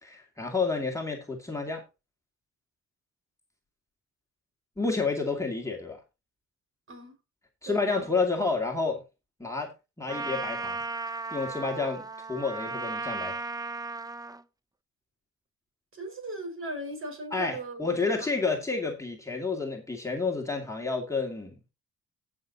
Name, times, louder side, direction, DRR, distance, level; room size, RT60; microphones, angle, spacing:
voice 1, 0.0-1.8 4.8-6.0 7.6-9.0 9.4-10.8 11.3-13.4 17.3-21.5, left 4 dB, 10° left, 2.4 m, -30 dB
voice 2, 7.6-8.1 15.9-18.3, right 2 dB, 45° right, 5.1 m, -38 dB
Trumpet, 10.1-14.4, right 3 dB, 10° right, 0.7 m, -35 dB
17.0 x 6.2 x 2.8 m
cardioid pair, 90°, 30 cm